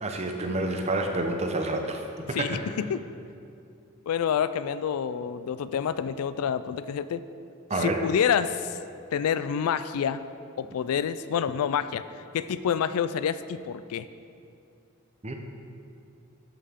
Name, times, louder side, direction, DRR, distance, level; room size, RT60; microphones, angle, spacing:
voice 1, 0.0-2.6 7.7-8.0 15.2-15.3, right 2 dB, 30° right, 4 dB, 0.7 m, -29 dB
voice 2, 2.3-3.0 4.1-7.2 7.8-8.8 9.1-10.2 10.6-12.0 12.3-14.1, left 8 dB, 80° left, 13 dB, 0.3 m, -28 dB
12.5 x 5.6 x 3.6 m, 2.5 s
head